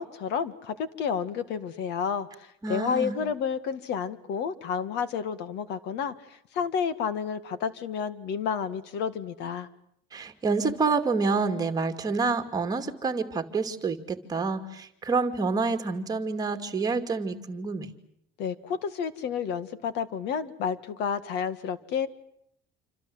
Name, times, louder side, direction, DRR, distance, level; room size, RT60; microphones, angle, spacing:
voice 1, 0.0-9.7 18.4-22.1, left 7 dB, 65° left, 14 dB, 2.0 m, -30 dB
voice 2, 2.6-3.2 10.1-17.9, right 4 dB, 20° right, 6 dB, 2.4 m, -28 dB
28.0 x 26.0 x 7.9 m, 0.72 s
cardioid pair, 165°, 19 cm